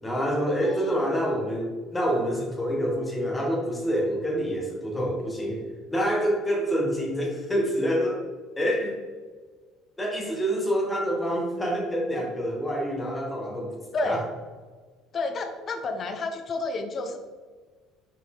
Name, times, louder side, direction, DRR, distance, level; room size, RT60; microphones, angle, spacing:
voice 1, 0.0-5.6 5.9-8.2 8.6-8.9 10.0-13.8 14.0-14.2, equal, 10° left, -1 dB, 1.3 m, -27 dB
voice 2, 0.6-0.9 13.9-14.3 15.1-17.2, left 3 dB, 30° left, 6 dB, 0.7 m, -30 dB
6.2 x 4.3 x 3.8 m, 1.4 s
cardioid pair, 150°, 0 cm